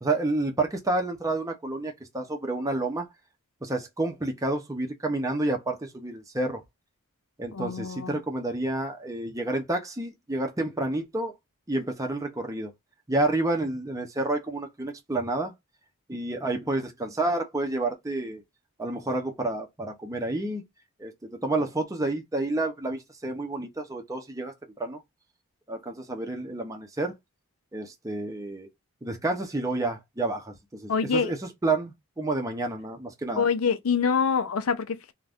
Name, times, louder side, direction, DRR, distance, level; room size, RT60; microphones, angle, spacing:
voice 1, 0.0-3.1 3.6-6.6 7.4-11.3 11.7-12.7 13.1-15.5 16.1-18.4 18.8-20.7 21.0-24.5 24.8-25.0 25.7-27.1 27.7-28.7 29.0-33.5, right 2 dB, 15° right, 0.6 m, -29 dB
voice 2, 7.5-8.2 30.9-31.3 33.3-35.1, left 6 dB, 70° left, 0.5 m, -25 dB
2.6 x 2.2 x 3.4 m
head